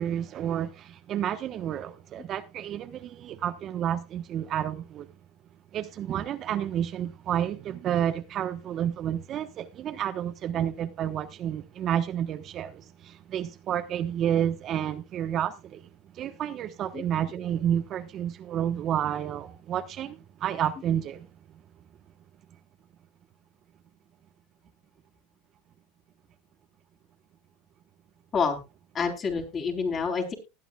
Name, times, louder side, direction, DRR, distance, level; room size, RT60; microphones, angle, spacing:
voice 1, 0.0-5.1 5.7-21.3 21.5-21.6, right 10 dB, 40° right, 1.1 m, -30 dB
voice 2, 28.9-30.3, left 5 dB, 35° left, 3.9 m, -28 dB
19.5 x 9.1 x 2.3 m
hypercardioid pair, 100°, 0 cm